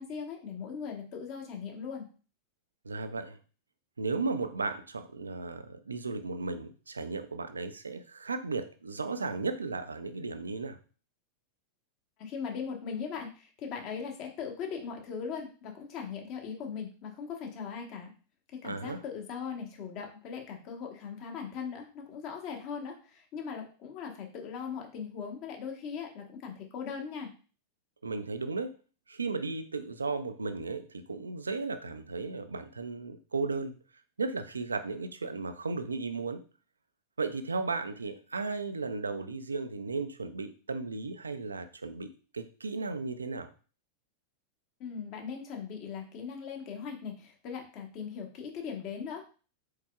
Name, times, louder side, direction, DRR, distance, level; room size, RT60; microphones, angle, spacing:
voice 1, 0.0-2.1 12.2-18.1 18.5-27.3 44.8-49.3, left 6 dB, 40° left, 2 dB, 1.1 m, -39 dB
voice 2, 2.8-3.4 4.0-10.8 18.6-19.0 28.0-28.7 29.1-33.8 34.2-36.4 37.2-43.5, right 3 dB, 75° right, 10 dB, 0.4 m, -35 dB
4.7 x 4.3 x 2.3 m, 0.38 s
figure-of-eight pair, 90°, 0 cm